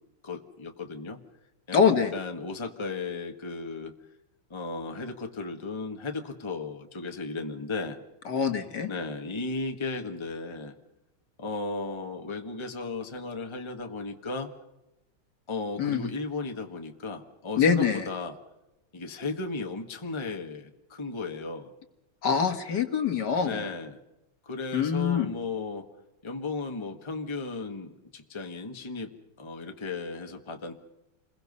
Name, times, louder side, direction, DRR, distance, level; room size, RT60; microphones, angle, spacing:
voice 1, 0.2-1.2 1.7-1.8 2.1-3.9 4.5-8.0 8.9-10.7 11.4-14.5 15.5-18.3 18.9-21.7 23.4-24.0 24.4-25.8 26.2-29.1 29.4-30.7, left 3 dB, 15° left, 5 dB, 1.4 m, -35 dB
voice 2, 1.7-2.1 8.3-8.9 15.8-16.1 17.6-18.1 22.2-23.6 24.7-25.3, left 6 dB, 55° left, 7 dB, 1.9 m, -24 dB
28.5 x 22.0 x 5.4 m, 0.92 s
omnidirectional pair, 2.4 m